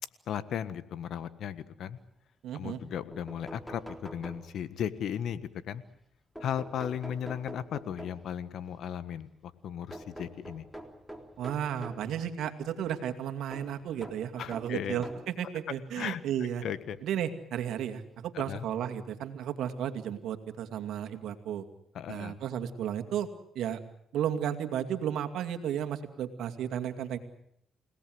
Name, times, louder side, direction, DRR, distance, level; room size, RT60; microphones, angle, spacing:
voice 1, 0.3-2.0 2.5-5.8 6.4-10.6 14.4-15.0 16.0-16.2 16.6-17.0 18.3-18.7 21.9-22.4, left 9 dB, 70° left, 14 dB, 1.5 m, -36 dB
voice 2, 2.4-2.8 11.4-16.6 17.0-21.6 22.1-23.3 23.5-23.8 24.1-27.2, right 9 dB, 80° right, 7 dB, 2.4 m, -33 dB
sound 1, 2.8-2.9 3.1-4.9 6.4-8.4 9.9-12.1 13.5-15.4 16.2-16.3 17.7-17.8 18.1-18.2, right 1 dB, 5° left, 3.7 m, -46 dB
29.5 x 18.0 x 7.9 m, 0.74 s
cardioid pair, 80°, 0 cm